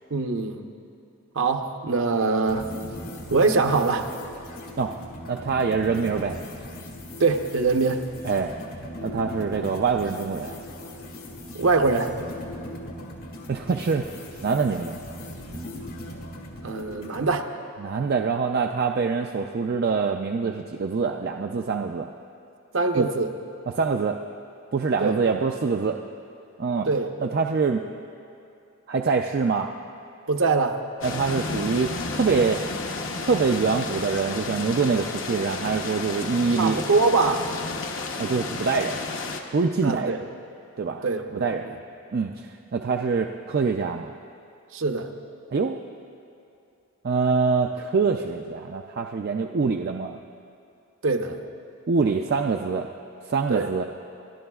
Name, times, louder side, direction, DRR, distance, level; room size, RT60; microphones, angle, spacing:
voice 1, 0.1-0.7 1.3-2.7 3.3-4.1 7.2-8.0 11.5-12.1 16.6-17.5 22.7-23.3 25.0-25.2 26.8-27.1 30.3-30.8 36.6-37.5 39.8-40.2 41.0-41.3 41.6-41.8 44.7-45.1 51.0-51.4 53.5-53.7, right 3 dB, 65° right, 5 dB, 0.8 m, -23 dB
sound 1, 2.5-17.3, left 1 dB, 80° left, 2.0 m, -39 dB
voice 2, 5.3-6.4 8.2-8.5 9.0-10.6 13.5-14.0 14.4-14.9 17.8-22.1 23.0-23.1 23.7-24.2 24.7-26.0 26.6-26.9 27.2-27.8 28.9-29.7 31.0-32.6 33.2-36.8 38.2-39.0 39.5-40.2 40.8-41.0 41.3-41.7 42.1-42.5 42.7-44.1 45.5-45.8 47.0-50.2 51.9-52.9 53.3-53.8, right 5 dB, 45° right, 3 dB, 0.4 m, -24 dB
sound 2, 31.0-39.4, left 3 dB, 60° left, 0.9 m, -32 dB
28.5 x 12.0 x 2.3 m, 2.7 s
head